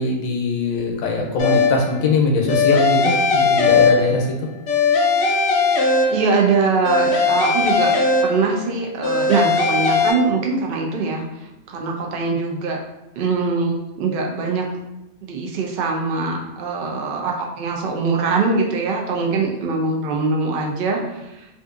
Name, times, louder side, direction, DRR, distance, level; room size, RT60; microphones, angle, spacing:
voice 1, 0.0-4.3, left 3 dB, 85° left, 1 dB, 1.0 m, -21 dB
sound 1, 1.4-2.0 2.5-4.3 4.7-6.5 6.8-8.6 9.0-10.1, left 4 dB, 65° left, 0.7 m, -18 dB
voice 2, 6.1-7.9 8.2-12.8 13.2-14.6 15.3-21.5, right 4 dB, 65° right, 0 dB, 0.5 m, -22 dB
2.6 x 2.5 x 2.4 m, 0.91 s
omnidirectional pair, 1.4 m